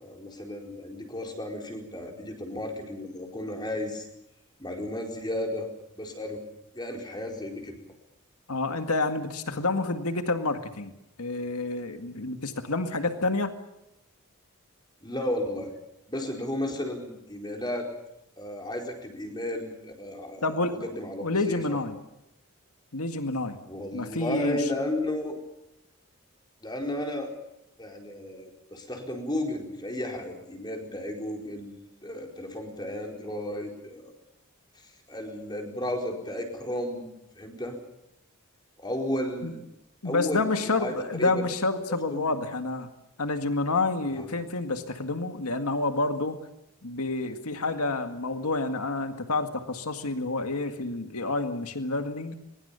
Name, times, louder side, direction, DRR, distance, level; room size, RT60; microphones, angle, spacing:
voice 1, 0.0-4.0 4.6-5.7 6.0-6.4 6.7-7.8 15.0-15.7 16.1-17.9 18.4-21.8 23.7-25.4 26.6-27.3 27.8-31.8 32.0-34.1 35.1-37.1 37.4-37.8 38.8-39.6 40.0-41.5 41.9-42.2 44.1-44.3, left 1 dB, 20° left, 2 dB, 4.5 m, -33 dB
voice 2, 8.5-10.9 11.2-13.5 20.4-20.9 21.2-22.0 22.9-23.6 23.9-24.6 39.4-39.5 40.0-42.9 43.2-46.4 46.8-52.4, left 3 dB, 90° left, 7 dB, 2.0 m, -28 dB
23.0 x 22.5 x 7.0 m, 0.85 s
head